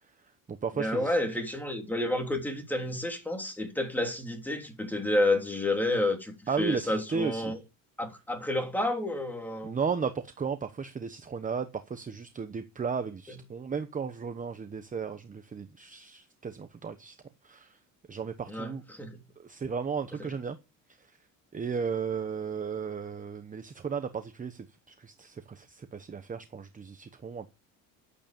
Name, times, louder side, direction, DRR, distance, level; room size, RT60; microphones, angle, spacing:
voice 1, 0.0-1.2 6.5-7.6 9.6-17.2 17.4-17.8 18.1-18.8 19.4-20.6 20.9-21.2 21.5-27.5, right 6 dB, 20° right, 1.0 m, -35 dB
voice 2, 0.8-7.6 8.0-9.8 18.5-19.2, left 1 dB, 5° left, 3.4 m, -30 dB
11.5 x 8.5 x 6.9 m
cardioid pair, 130°, 35 cm